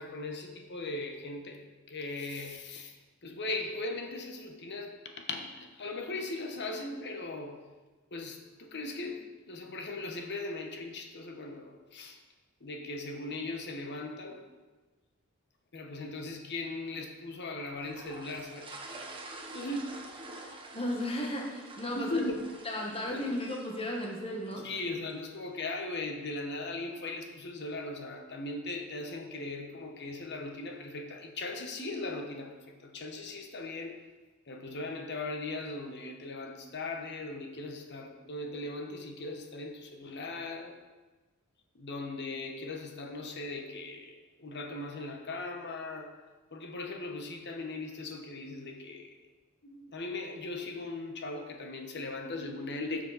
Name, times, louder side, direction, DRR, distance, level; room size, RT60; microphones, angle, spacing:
voice 1, 0.0-1.6 1.9-2.9 3.2-7.6 8.1-12.2 12.6-14.4 15.7-18.7 19.5-19.9 20.3-20.4 21.9-22.4 23.1-23.3 24.6-34.0 34.5-40.8 41.7-46.1 46.5-49.1 49.6-53.0, left 2 dB, 55° left, 4 dB, 1.2 m, -38 dB
sound 1, 17.8-25.1, right 2 dB, 25° right, 1.1 m, -48 dB
voice 2, 20.7-22.2 22.6-24.7, left 1 dB, 25° left, -1 dB, 1.5 m, -34 dB
13.0 x 6.7 x 4.1 m, 1.2 s
head